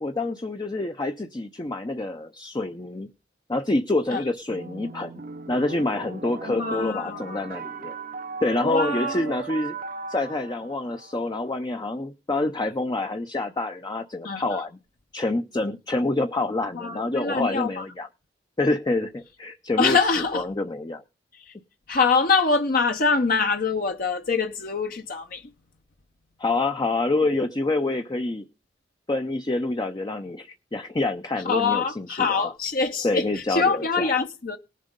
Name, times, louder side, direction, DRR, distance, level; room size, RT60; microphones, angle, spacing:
voice 1, 0.0-3.1 3.5-5.2 5.5-7.9 8.4-9.8 10.1-14.7 15.1-18.1 18.6-20.0 20.3-21.0 26.4-28.4 29.1-32.5 33.0-34.1, left 2 dB, 25° left, 0.6 m, -27 dB
sound 1, 4.5-11.5, right 5 dB, 50° right, 0.8 m, -38 dB
voice 2, 6.5-7.4 8.6-9.3 14.2-14.6 16.7-17.8 19.8-20.5 21.3-21.5 21.9-25.5 31.4-34.6, left 4 dB, 50° left, 0.8 m, -24 dB
18.5 x 7.5 x 5.2 m
head